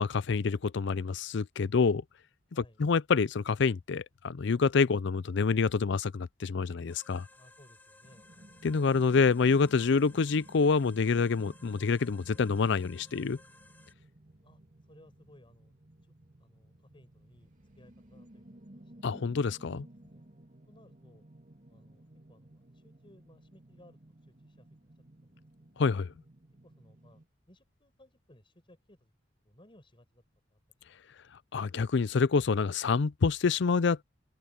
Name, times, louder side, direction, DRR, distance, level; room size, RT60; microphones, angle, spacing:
voice 1, 0.0-2.0 2.8-7.3 8.6-13.4 19.0-19.9 25.8-26.1 31.5-34.0, left 5 dB, 65° left, 0.5 m, -27 dB
sound 1, 6.9-13.9, left 2 dB, 10° left, 2.5 m, -58 dB
voice 2, 7.4-8.5 14.4-14.6 14.9-15.8 16.0-16.1 16.4-17.5 17.8-19.0 19.7-20.3 20.7-21.2 21.7-24.9 25.2-25.9 26.6-27.2 27.5-29.1 29.5-30.2 30.5-30.6 30.9-31.3, left 1 dB, 30° left, 6.9 m, -61 dB
sound 2, 8.0-27.3, right 1 dB, 45° right, 2.9 m, -56 dB
open air
head